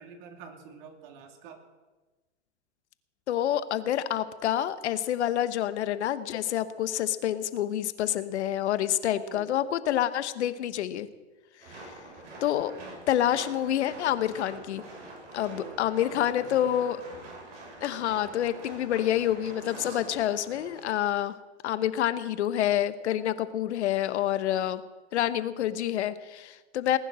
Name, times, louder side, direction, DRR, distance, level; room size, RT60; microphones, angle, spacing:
voice 1, 0.0-1.6 9.1-9.5 15.5-16.7, right 6 dB, 55° right, 4 dB, 2.9 m, -47 dB
voice 2, 3.3-11.1 11.7-11.9 12.4-12.7 13.1-14.8 15.3-17.0 17.8-21.3 21.6-24.8 25.1-27.0, left 11 dB, 70° left, 13 dB, 1.2 m, -28 dB
sound 1, 11.6-21.2, right 2 dB, 85° right, 7.1 m, -45 dB
19.5 x 10.0 x 6.3 m, 1.2 s
hypercardioid pair, 110°, 34 cm